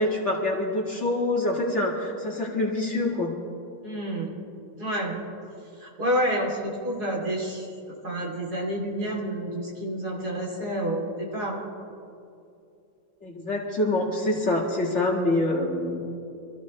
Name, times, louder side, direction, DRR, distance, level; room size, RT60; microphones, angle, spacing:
voice 1, 0.0-3.3 13.2-16.0, left 2 dB, 40° left, -2 dB, 2.3 m, -26 dB
voice 2, 3.8-4.4 4.8-5.2 5.8-7.7 8.0-11.7, equal, 60° right, -3 dB, 3.6 m, -29 dB
26.0 x 14.5 x 3.2 m, 2.6 s
omnidirectional pair, 1.9 m